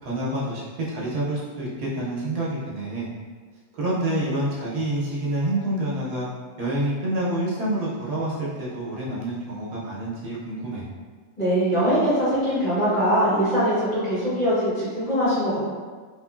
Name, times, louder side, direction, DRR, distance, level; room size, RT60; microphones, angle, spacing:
voice 1, 0.0-3.1 3.8-6.3 6.6-10.8, right 1 dB, 80° right, -6 dB, 1.4 m, -27 dB
voice 2, 11.4-15.6, equal, 30° left, -13 dB, 1.7 m, -22 dB
3.5 x 3.1 x 2.4 m, 1.5 s
omnidirectional pair, 1.7 m